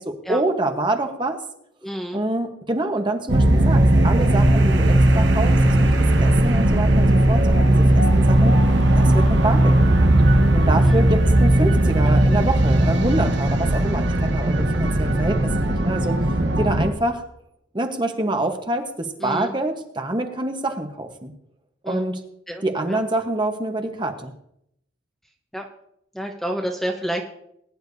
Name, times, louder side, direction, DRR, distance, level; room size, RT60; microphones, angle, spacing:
voice 1, 0.0-1.4 2.1-5.9 6.2-8.6 9.0-10.1 10.5-16.2 16.6-17.2 17.7-21.3 21.8-22.2 22.6-24.3, right 2 dB, 25° right, 5 dB, 1.1 m, -26 dB
voice 2, 1.8-2.2 10.8-11.1 19.2-19.5 21.8-22.1 22.5-23.0 25.5-25.7 26.1-27.2, right 1 dB, ahead, 1 dB, 0.9 m, -29 dB
sound 1, 3.3-16.9, right 1 dB, 65° right, 1.2 m, -17 dB
20.5 x 10.5 x 2.7 m, 0.75 s
head